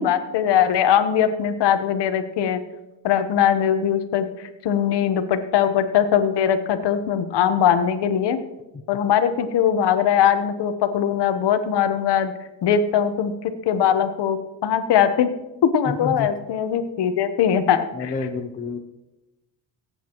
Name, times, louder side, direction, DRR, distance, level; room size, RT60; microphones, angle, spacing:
voice 1, 0.0-2.6 3.0-8.4 8.9-12.3 12.6-15.3 15.6-18.1, left 9 dB, 65° left, 9 dB, 1.1 m, -21 dB
voice 2, 15.9-16.3 17.9-18.8, left 4 dB, 20° left, 5 dB, 0.7 m, -29 dB
23.0 x 8.4 x 3.0 m, 1.0 s
cardioid pair, 135°, 45 cm